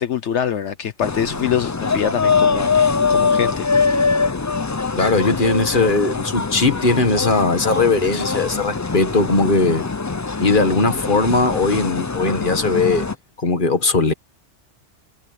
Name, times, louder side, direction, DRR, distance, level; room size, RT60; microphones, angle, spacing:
voice 1, 0.0-4.1 8.1-8.3, left 9 dB, 75° left, 1.2 m, -25 dB
sound 1, 1.0-13.1, left 4 dB, 25° left, 0.4 m, -22 dB
voice 2, 5.0-9.8 10.4-13.1 13.4-14.1, left 3 dB, 45° left, 1.9 m, -19 dB
omnidirectional pair, 1.2 m